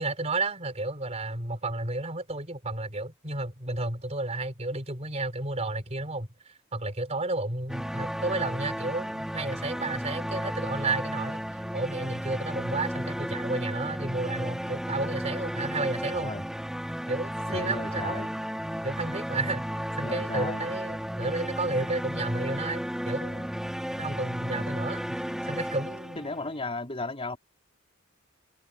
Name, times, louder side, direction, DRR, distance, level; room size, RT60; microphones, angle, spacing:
voice 1, 0.0-11.4 11.7-16.3 17.1-18.3 18.8-23.5 24.0-26.2, right 2 dB, 35° right, 4.0 m, -32 dB
sound 1, 7.7-26.6, equal, 5° right, 2.2 m, -34 dB
voice 2, 16.1-16.4 17.5-18.3 20.0-20.7 24.5-24.8 26.2-27.4, left 2 dB, 30° left, 3.8 m, -35 dB
head